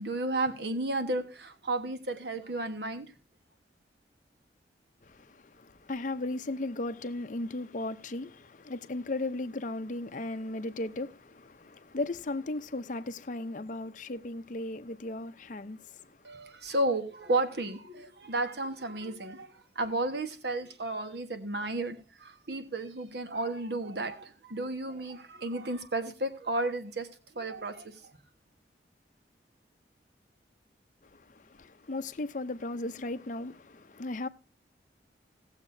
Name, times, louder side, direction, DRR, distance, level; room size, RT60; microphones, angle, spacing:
voice 1, 0.0-3.1 16.2-27.1 27.3-28.1, right 2 dB, 65° right, 1.3 m, -33 dB
voice 2, 5.0-16.2 31.1-34.3, left 2 dB, 45° left, 0.6 m, -36 dB
18.5 x 7.2 x 2.7 m
head